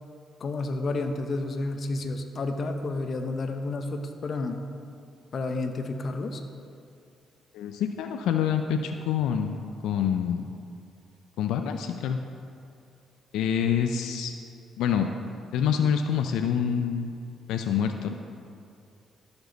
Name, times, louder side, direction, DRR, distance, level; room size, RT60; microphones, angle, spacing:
voice 1, 0.4-4.6 5.3-6.4, left 2 dB, 50° left, 6 dB, 0.8 m, -30 dB
voice 2, 7.5-9.6 9.8-10.4 11.4-12.2 13.3-14.3 14.8-15.1 15.5-17.1 17.5-18.2, left 8 dB, 90° left, 5 dB, 0.4 m, -26 dB
12.5 x 7.0 x 4.0 m, 2.5 s
cardioid pair, 90°, 0 cm